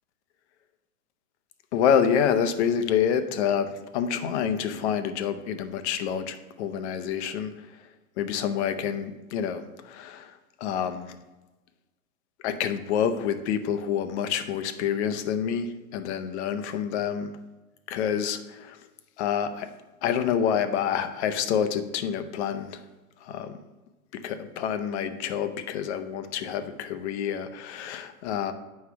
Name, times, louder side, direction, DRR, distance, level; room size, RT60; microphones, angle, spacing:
voice 1, 1.7-7.9 8.2-11.2 12.4-17.3 17.9-18.8 19.2-19.7 20.0-22.8 23.2-23.6 24.1-28.5, left 8 dB, 50° left, 10 dB, 0.8 m, -28 dB
9.2 x 3.3 x 5.9 m, 1.1 s
hypercardioid pair, 105°, 44 cm